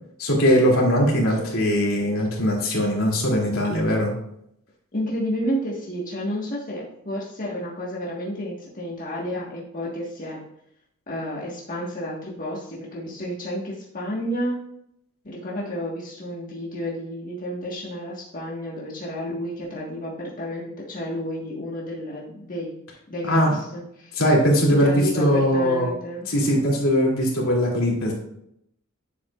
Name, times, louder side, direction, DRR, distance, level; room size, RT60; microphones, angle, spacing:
voice 1, 0.2-4.1 23.2-23.6 24.2-25.9 26.3-28.1, equal, 80° left, -3 dB, 2.7 m, -20 dB
voice 2, 4.9-10.4 11.1-14.6 15.2-22.7 23.1-24.2 24.8-26.3, equal, 40° left, -5 dB, 1.5 m, -31 dB
10.0 x 7.4 x 2.4 m, 0.76 s
head